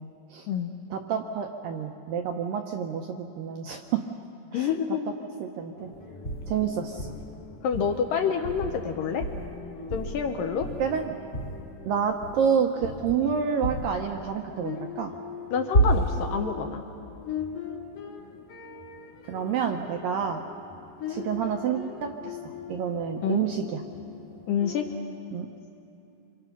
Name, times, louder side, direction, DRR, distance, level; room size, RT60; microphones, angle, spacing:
voice 1, 0.0-0.5 0.9-4.0 4.5-4.7 5.4-5.9 6.5-7.1 10.8-11.2 11.9-15.1 19.3-20.4 21.1-22.4 22.7-23.8 25.3-25.5, right 7 dB, 75° right, 4 dB, 2.0 m, -29 dB
voice 2, 4.5-5.1 7.6-9.2 9.9-10.7 15.5-16.8 23.2-23.5 24.5-24.9, left 7 dB, 75° left, 5 dB, 2.1 m, -27 dB
sound 1, 5.8-25.0, left 7 dB, 60° left, 2.8 m, -41 dB
sound 2, 6.2-6.6 7.0-7.3 7.7-8.0 8.4-8.9 9.2-9.5 9.9-10.3 10.6-11.0 11.3-11.6 12.1-12.5 12.8-13.3 13.6-14.0 15.7-16.3, right 1 dB, 35° left, 1.5 m, -28 dB
26.5 x 26.0 x 6.0 m, 2.7 s
omnidirectional pair, 5.0 m